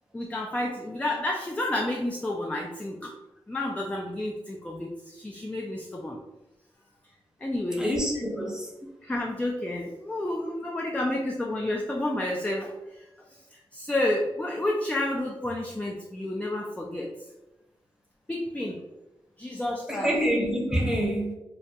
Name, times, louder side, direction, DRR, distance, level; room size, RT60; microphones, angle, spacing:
voice 1, 0.1-3.1 3.5-6.2 7.4-7.9 9.0-17.1 18.3-18.8 19.4-20.1, left 1 dB, 10° left, 0 dB, 0.3 m, -30 dB
voice 2, 7.8-8.7 19.9-21.3, equal, 5° right, -1 dB, 0.7 m, -26 dB
2.3 x 2.2 x 2.7 m, 0.99 s
cardioid pair, 55°, 11 cm